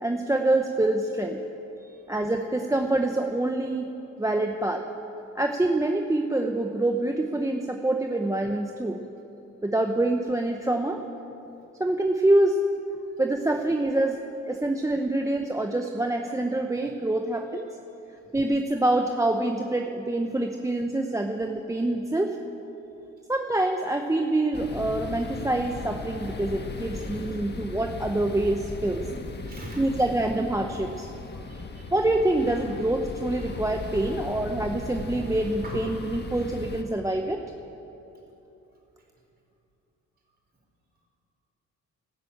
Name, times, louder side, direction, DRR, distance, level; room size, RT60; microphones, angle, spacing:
voice 1, 0.0-1.4 2.1-3.9 4.2-4.9 5.3-9.0 9.6-11.0 11.8-12.6 13.2-14.2 14.5-17.7 18.3-22.4 23.3-29.0 29.8-31.1 31.9-37.4, right 1 dB, 10° right, 4 dB, 0.8 m, -26 dB
sound 1, 24.5-36.8, left 3 dB, 35° left, 1.4 m, -37 dB
voice 2, 29.4-29.9 31.3-31.9 33.5-33.6 34.1-34.6 35.6-35.8, right 2 dB, 30° right, -1 dB, 4.7 m, -45 dB
13.0 x 12.5 x 8.7 m, 3.0 s
cardioid pair, 90°, 30 cm